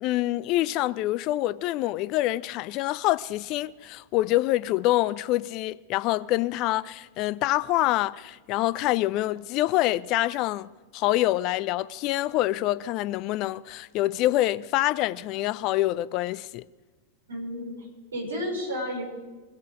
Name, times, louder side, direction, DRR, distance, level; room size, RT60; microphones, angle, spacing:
voice 1, 0.0-16.6, left 16 dB, 40° left, 0.4 m, -26 dB
voice 2, 17.3-19.0, equal, 70° right, 4.6 m, -32 dB
21.5 x 8.2 x 5.1 m
figure-of-eight pair, 90°, 0 cm